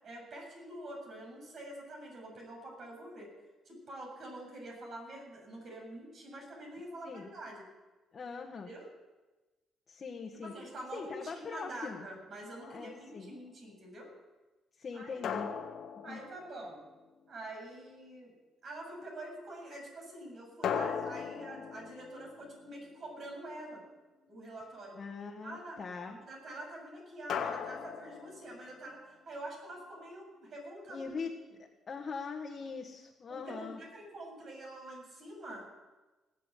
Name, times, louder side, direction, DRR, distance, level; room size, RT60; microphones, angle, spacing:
voice 1, 0.0-3.3 3.7-7.6 8.6-8.9 10.4-14.1 14.9-15.1 16.0-16.8 17.3-18.3 18.6-23.8 24.3-25.0 25.4-31.1 33.3-35.9, right 1 dB, 55° right, 0 dB, 7.2 m, -46 dB
voice 2, 8.1-8.7 9.9-10.5 10.9-12.1 12.7-13.3 14.8-15.5 16.1-16.2 25.0-26.1 30.9-31.3 31.6-33.8, left 5 dB, 45° left, 0 dB, 1.7 m, -42 dB
sound 1, 12.6-13.2 15.2-17.1 20.6-23.2 27.3-28.9, left 7 dB, 70° left, 1.5 m, -39 dB
19.0 x 7.5 x 8.6 m, 1.2 s
cardioid pair, 90°, 0 cm